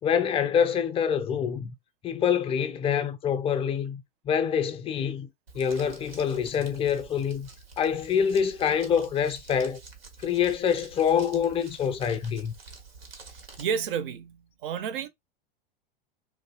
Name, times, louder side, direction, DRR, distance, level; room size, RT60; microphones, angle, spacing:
voice 1, 0.0-1.7 2.0-5.3 5.5-7.5 7.8-9.8 10.2-12.5, left 7 dB, 20° left, 0.4 m, -26 dB
Crumpling crinkling, 5.5-13.6, right 4 dB, 90° right, 1.0 m, -48 dB
voice 2, 13.6-15.1, right 7 dB, 60° right, 0.6 m, -31 dB
3.6 x 2.6 x 2.3 m
hypercardioid pair, 95°, 29 cm